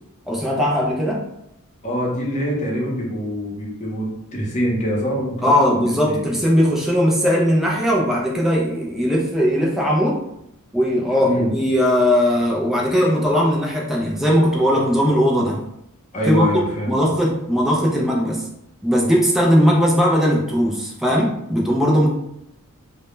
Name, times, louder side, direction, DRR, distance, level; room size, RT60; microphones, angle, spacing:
voice 1, 0.3-1.2 5.4-10.2 10.7-15.6 16.3-16.5 16.9-18.5 18.8-22.1, equal, ahead, -3 dB, 0.3 m, -18 dB
voice 2, 1.8-6.2 11.2-11.5 16.1-17.0, equal, 30° left, -3 dB, 0.7 m, -24 dB
2.1 x 2.0 x 3.0 m, 0.81 s
head